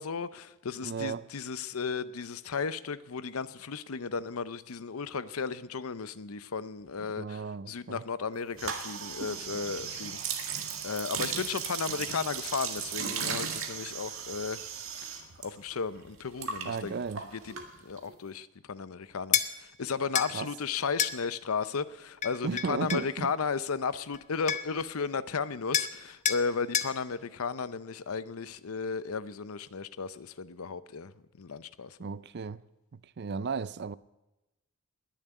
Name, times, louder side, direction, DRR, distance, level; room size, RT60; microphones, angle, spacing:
voice 1, 0.0-10.2 10.8-14.6 15.0-17.0 17.3-17.5 17.8-31.1 31.4-32.0, left 5 dB, 80° left, 0.7 m, -34 dB
voice 2, 0.8-1.2 7.2-8.0 16.6-17.2 20.3-20.5 22.4-23.3 32.0-32.6 32.9-34.0, right 5 dB, 50° right, 0.4 m, -35 dB
sound 1, 8.6-15.5 15.7-18.1, right 7 dB, 65° right, 1.9 m, -36 dB
sound 2, 19.3-19.5 20.1-20.3 21.0-21.2 22.2-23.1 24.1-24.2 24.5-24.8 25.7-26.0 26.2-26.4 26.7-26.9, left 8 dB, 35° left, 0.7 m, -28 dB
20.5 x 7.4 x 9.2 m
head